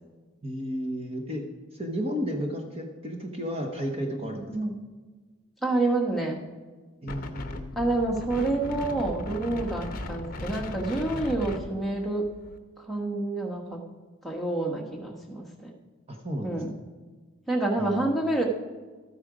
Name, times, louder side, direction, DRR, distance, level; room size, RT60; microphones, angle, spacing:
voice 1, 0.4-1.4 1.7-4.6 7.0-7.7 16.1-16.6 17.8-18.0, equal, 25° right, 2 dB, 1.0 m, -33 dB
voice 2, 4.4-4.8 5.6-6.4 7.7-12.3 12.9-13.8 14.2-15.7 16.4-16.7 17.5-18.4, right 2 dB, ahead, -1 dB, 1.3 m, -28 dB
Wind, 7.1-12.6, left 1 dB, 40° left, 0.9 m, -37 dB
13.5 x 8.8 x 5.0 m, 1.4 s
head